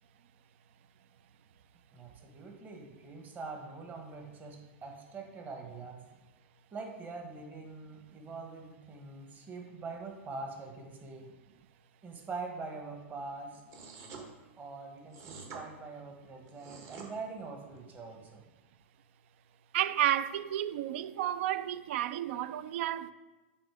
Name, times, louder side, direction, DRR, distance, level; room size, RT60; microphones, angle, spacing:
voice 1, 1.9-6.0 6.7-11.3 12.0-13.6 14.6-18.4, right 3 dB, 25° right, 1.4 m, -44 dB
sound 1, 13.7-14.2 15.1-15.6 16.5-17.1, right 5 dB, 45° right, 1.6 m, -46 dB
voice 2, 19.7-23.1, right 12 dB, 65° right, 0.4 m, -31 dB
7.8 x 4.2 x 4.9 m
hypercardioid pair, 115°, 7 cm